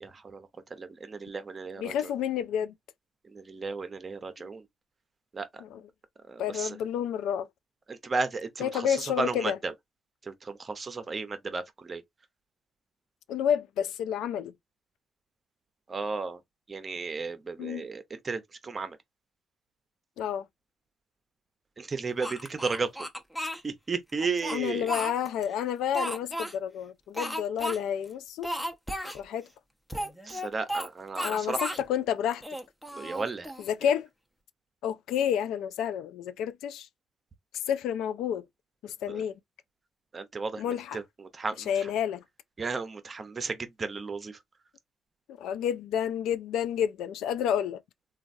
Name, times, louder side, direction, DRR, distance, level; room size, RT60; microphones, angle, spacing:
voice 1, 0.0-2.1 3.3-4.6 5.3-5.6 6.3-6.8 7.9-9.7 10.2-12.0 15.9-16.4 16.7-19.0 21.8-22.9 23.6-24.9 30.2-31.6 32.9-33.5 39.1-39.2 40.1-41.9 42.6-44.4, right 4 dB, 35° right, 0.7 m, -34 dB
voice 2, 1.8-2.7 5.6-5.8 6.4-7.5 8.6-9.6 13.3-14.5 17.6-17.9 20.2-20.5 24.5-28.5 29.1-29.5 31.2-32.4 33.6-34.1 34.8-36.9 37.7-38.4 38.8-39.4 40.6-41.0 41.7-42.2 45.3-47.8, left 9 dB, 85° left, 0.3 m, -30 dB
Speech, 22.2-23.6 24.2-25.5 25.9-26.5 27.1-27.8 28.0-28.1 28.4-29.2 29.9-30.9 31.1-31.8 32.3-33.7, equal, 5° left, 0.7 m, -34 dB
3.1 x 2.3 x 2.5 m
cardioid pair, 90°, 0 cm